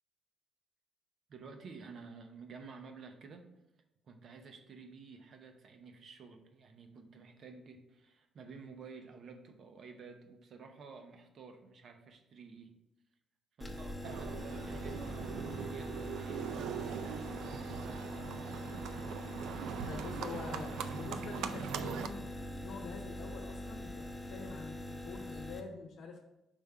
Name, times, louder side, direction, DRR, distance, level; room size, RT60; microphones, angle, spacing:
voice 1, 1.3-3.5 4.0-12.7 13.6-18.4, right 4 dB, 60° right, 6 dB, 0.8 m, -52 dB
sound 1, 13.6-25.6, equal, 10° left, 0.8 m, -43 dB
Livestock farm animals working animals, 14.0-22.1, right 8 dB, 85° right, 0.3 m, -41 dB
voice 2, 19.9-26.2, left 4 dB, 80° left, 0 dB, 0.8 m, -46 dB
5.3 x 3.5 x 5.4 m, 0.91 s
cardioid pair, 90°, 0 cm